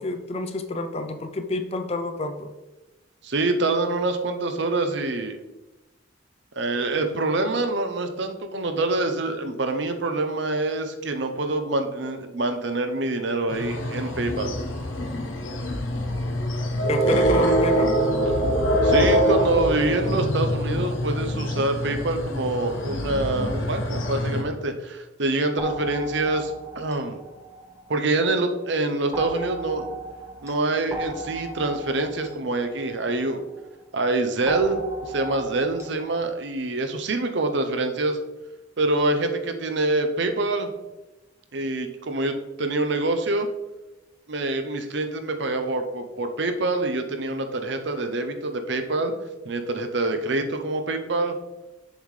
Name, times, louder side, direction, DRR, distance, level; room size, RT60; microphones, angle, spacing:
voice 1, 0.0-2.5 16.9-17.9, left 2 dB, 30° left, 7 dB, 0.5 m, -28 dB
voice 2, 3.2-5.4 6.6-14.5 18.8-27.2 27.9-29.9 30.4-33.5 33.9-38.2 38.8-40.7 41.5-43.5 44.3-49.1 49.4-51.3, right 2 dB, 60° right, 7 dB, 0.7 m, -26 dB
sound 1, 13.5-24.4, equal, 80° left, 1.0 m, -24 dB
sound 2, 25.6-28.3 29.1-33.7 34.5-36.2, right 2 dB, 15° right, 0.8 m, -37 dB
7.3 x 5.6 x 3.2 m, 1.1 s
head